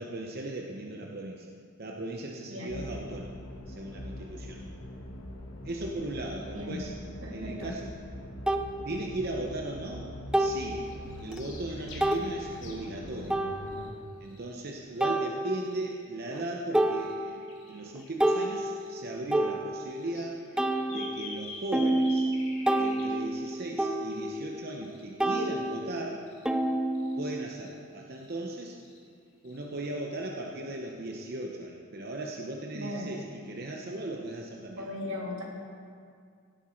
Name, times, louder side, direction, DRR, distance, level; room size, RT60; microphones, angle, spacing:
voice 1, 0.0-1.5 1.8-3.3 3.7-4.6 5.6-6.9 7.3-8.2 8.9-10.1 10.4-10.9 11.2-13.4 14.2-20.4 20.9-22.3 22.7-26.2 27.2-28.8 29.4-34.9, right 1 dB, 50° right, 0 dB, 0.8 m, -37 dB
voice 2, 2.5-2.8 6.5-6.8 7.2-7.7 32.7-33.1 34.8-35.4, left 1 dB, 75° right, -2 dB, 2.2 m, -37 dB
sound 1, 2.7-13.9, left 1 dB, 85° left, 1.2 m, -43 dB
sound 2, 7.6-7.7 8.5-8.7 10.3-10.7 11.3-11.4 12.0-12.3 13.3-13.9 15.0-15.8 16.3-16.4 16.7-17.6 17.9-20.1 20.6-24.9 25.2-27.5, right 1 dB, 5° right, 0.4 m, -29 dB
sound 3, 10.4-12.8 13.0-15.2 15.6-16.5 16.9-17.1 17.4-18.4 18.8-19.0 19.9-25.0 25.6-25.8 26.3-26.5 26.9-27.1 27.5-27.7 28.0-28.3 28.8-29.0 29.4-29.6, left 3 dB, 65° left, 2.2 m, -48 dB
17.0 x 7.8 x 4.4 m, 2.2 s
head